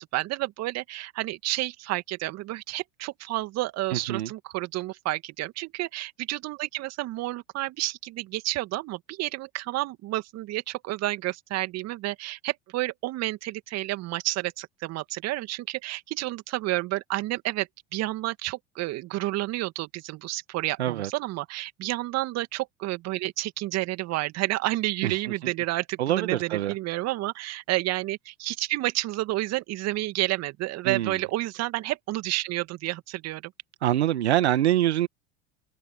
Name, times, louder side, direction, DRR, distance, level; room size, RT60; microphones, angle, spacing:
voice 1, 0.0-33.5, right 18 dB, 50° right, 2.2 m, -30 dB
voice 2, 3.9-4.3 20.8-21.1 25.0-25.1 25.4-25.5 26.0-26.7 30.8-31.2 33.8-35.1, right 12 dB, 80° right, 1.8 m, -25 dB
hypercardioid pair, 75°, 32 cm